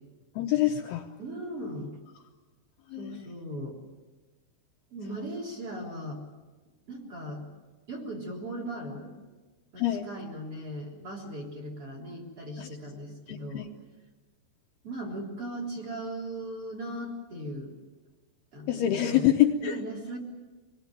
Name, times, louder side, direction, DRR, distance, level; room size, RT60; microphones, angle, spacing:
voice 1, 0.4-1.1 2.9-3.2 9.8-10.1 12.6-12.8 13.3-13.7 18.7-19.8, left 12 dB, 75° left, 3 dB, 2.6 m, -26 dB
voice 2, 1.2-2.0 3.0-3.8 4.9-6.2 6.9-7.5 7.9-9.1 9.7-13.7 14.8-17.8 18.5-19.3 19.6-20.2, right 1 dB, 30° right, 0 dB, 4.3 m, -38 dB
26.0 x 20.0 x 9.0 m, 1.3 s
omnidirectional pair, 5.3 m